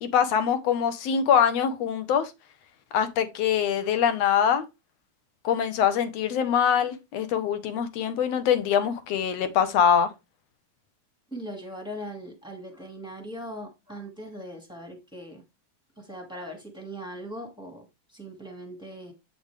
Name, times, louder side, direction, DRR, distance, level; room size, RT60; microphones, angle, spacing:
voice 1, 0.0-2.3 2.9-4.6 5.4-10.1, left 8 dB, 70° left, 1.8 m, -23 dB
voice 2, 11.3-15.4 16.0-19.1, equal, 5° right, 0.9 m, -40 dB
8.5 x 5.2 x 3.3 m
omnidirectional pair, 3.5 m